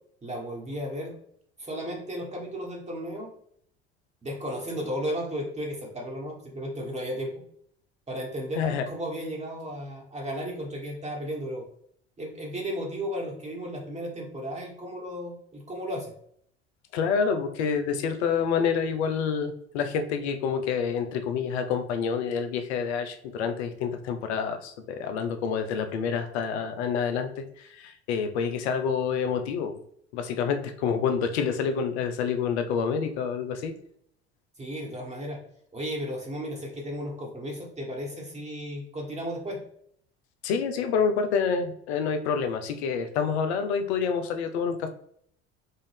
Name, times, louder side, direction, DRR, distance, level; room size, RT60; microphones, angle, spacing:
voice 1, 0.2-1.1 1.6-3.3 4.2-7.4 8.1-11.7 12.2-16.1 34.6-35.4 35.7-39.6, equal, 20° right, -1 dB, 1.3 m, -34 dB
voice 2, 8.6-8.9 16.9-29.8 30.1-33.7 40.4-44.9, left 6 dB, 75° left, 7 dB, 0.7 m, -28 dB
5.5 x 2.6 x 3.4 m, 0.66 s
hypercardioid pair, 65°, 33 cm